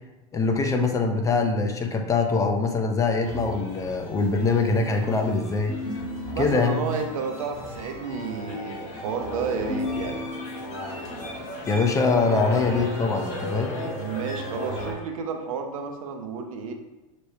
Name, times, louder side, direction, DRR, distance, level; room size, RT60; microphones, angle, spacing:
voice 1, 0.3-5.7 6.4-6.8 11.7-13.7, left 4 dB, 20° left, 4 dB, 0.6 m, -23 dB
sound 1, 3.2-14.9, left 1 dB, 45° left, 1.5 m, -34 dB
voice 2, 6.3-10.2 14.0-16.7, right 5 dB, 90° right, 4 dB, 0.7 m, -31 dB
6.1 x 3.2 x 2.7 m, 1.1 s
supercardioid pair, 120°, 17 cm